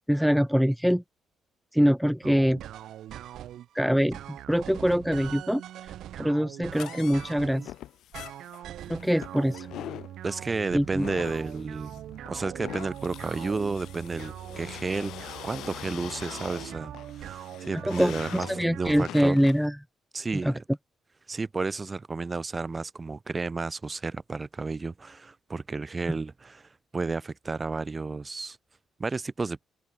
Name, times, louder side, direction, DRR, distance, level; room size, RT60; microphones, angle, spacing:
voice 1, 0.1-1.0 1.7-2.6 3.7-7.7 8.9-9.7 10.7-11.1 17.8-18.1 18.5-19.8 20.4-20.5, equal, ahead, 0.8 m, -24 dB
sound 1, 2.2-3.7 4.1-7.7 8.1-19.0, right 12 dB, 75° right, 1.1 m, -42 dB
sound 2, 6.7-19.7, left 13 dB, 80° left, 3.2 m, -43 dB
voice 2, 10.2-11.9 12.3-19.4 20.1-20.6 21.3-28.6 29.0-29.6, right 3 dB, 25° right, 2.1 m, -32 dB
Bass guitar, 10.7-16.9, right 9 dB, 60° right, 7.0 m, -49 dB
open air
cardioid pair, 90°, 0 cm